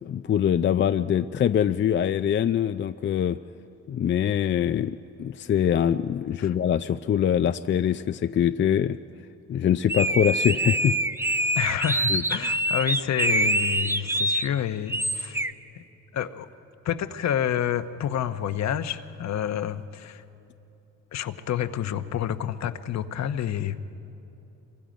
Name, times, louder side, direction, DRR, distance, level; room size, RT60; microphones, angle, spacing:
voice 1, 0.0-3.4 3.9-9.0 9.5-11.0 11.2-11.4 12.1-12.2, left 9 dB, 40° left, 10 dB, 0.4 m, -24 dB
sound 1, 9.9-14.5 14.9-15.5, right 1 dB, 10° right, 0.6 m, -25 dB
voice 2, 11.6-15.5 15.7-15.8 16.1-16.5 16.8-20.2 21.1-23.9, left 10 dB, 65° left, 10 dB, 1.0 m, -29 dB
27.5 x 23.5 x 5.2 m, 2.9 s
cardioid pair, 90°, 30 cm